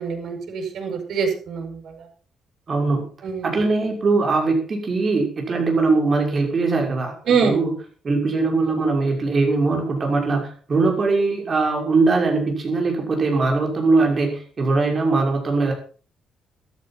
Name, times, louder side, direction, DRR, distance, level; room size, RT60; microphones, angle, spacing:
voice 1, 0.0-2.1 3.2-3.6 7.3-7.6, right 5 dB, 65° right, 4 dB, 7.3 m, -24 dB
voice 2, 2.7-3.1 3.4-7.7 8.0-15.7, right 3 dB, 30° right, 2 dB, 6.3 m, -21 dB
14.0 x 13.5 x 5.9 m, 0.40 s
cardioid pair, 145°, 0 cm